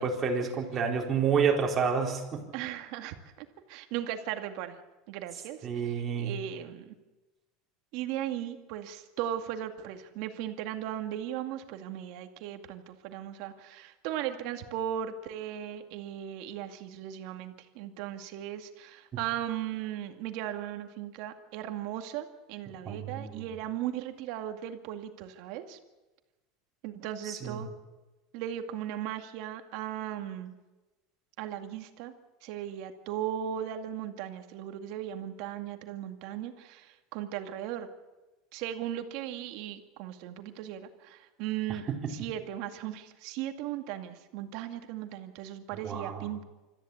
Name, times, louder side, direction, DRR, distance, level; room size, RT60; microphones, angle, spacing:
voice 1, 0.0-2.4 5.6-6.3 22.9-23.4 27.2-27.6 41.9-42.1 45.8-46.3, right 6 dB, 25° right, 0 dB, 4.3 m, -29 dB
voice 2, 2.5-4.8 5.1-6.9 7.9-25.8 26.8-27.7 28.3-30.5 31.4-32.1 32.4-37.9 38.5-46.4, right 11 dB, 60° right, 6 dB, 2.2 m, -37 dB
26.0 x 14.0 x 8.6 m, 1.1 s
supercardioid pair, 140°, 0 cm